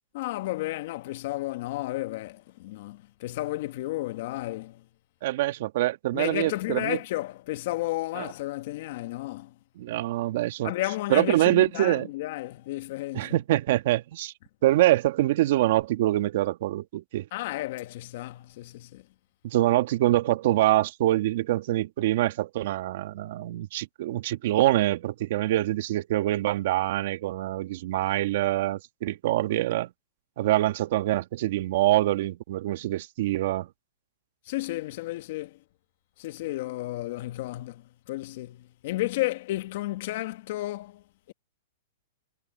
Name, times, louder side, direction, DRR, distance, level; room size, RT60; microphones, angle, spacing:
voice 1, 0.1-4.8 6.1-9.5 10.6-13.3 17.3-19.0 34.5-35.6 36.2-41.3, left 17 dB, 55° left, 1.5 m, -33 dB
voice 2, 5.2-7.0 8.1-8.3 9.8-10.7 11.1-12.1 13.1-14.3 14.6-17.3 19.4-29.9 30.4-33.7, right 15 dB, 60° right, 1.7 m, -25 dB
hypercardioid pair, 140°, 0 cm